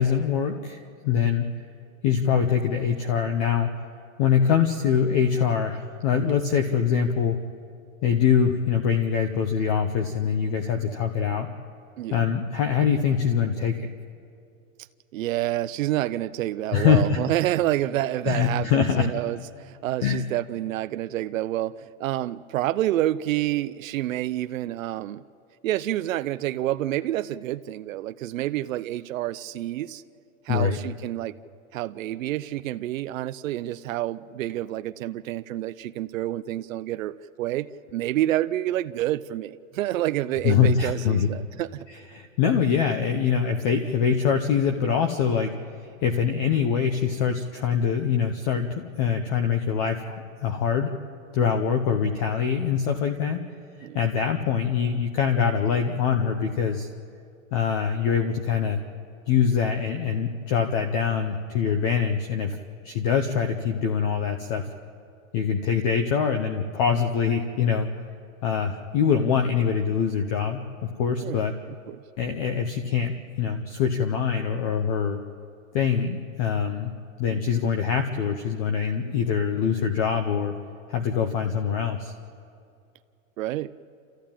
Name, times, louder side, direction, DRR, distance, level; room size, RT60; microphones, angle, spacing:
voice 1, 0.0-1.5 2.0-3.7 4.2-7.4 8.0-11.5 12.1-13.9 16.7-17.2 18.3-19.1 20.0-20.2 30.5-30.8 40.4-41.3 41.9-45.5 45.8-50.9 51.3-53.4 53.9-56.9 57.5-58.8 59.3-62.6 62.8-64.6 65.3-67.9 68.4-71.5 72.2-75.2 75.7-76.9 77.2-80.5 80.9-82.1, left 7 dB, 25° left, 6 dB, 0.8 m, -24 dB
voice 2, 15.1-25.2 25.6-30.0 30.4-31.3 31.7-41.9 51.4-51.5 53.8-54.0 68.9-69.0 71.2-71.4 71.7-72.0 77.3-77.6 83.4-83.8, right 14 dB, 70° right, 12 dB, 0.7 m, -28 dB
28.5 x 14.5 x 8.8 m, 2.5 s
supercardioid pair, 175°, 41 cm